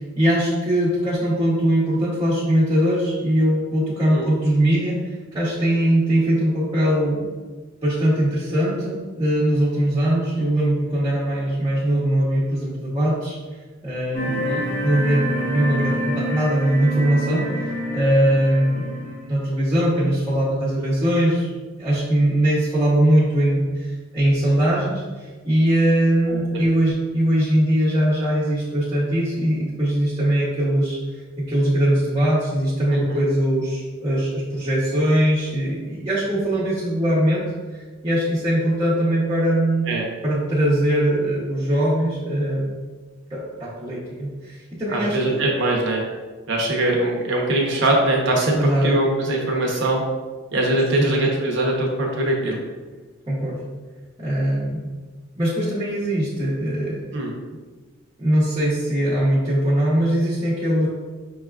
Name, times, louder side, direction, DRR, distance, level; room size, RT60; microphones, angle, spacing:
voice 1, 0.2-5.0 5.3-7.3 7.8-13.4 13.8-14.5 14.8-17.5 17.9-21.5 21.8-31.0 31.4-39.8 40.2-42.8 43.3-45.4 48.5-49.0 50.9-51.1 53.3-53.6 54.2-54.9 55.4-57.0 58.2-60.9, right 1 dB, 20° right, -9 dB, 0.7 m, -21 dB
sound 1, 14.1-19.2, equal, 15° left, 0.5 m, -27 dB
voice 2, 26.3-26.6 32.9-33.2 39.9-40.1 44.9-46.0 46.5-48.6 48.8-50.0 50.5-52.6 57.1-57.3, right 1 dB, 65° right, -1 dB, 0.8 m, -22 dB
5.8 x 2.3 x 2.3 m, 1.3 s
head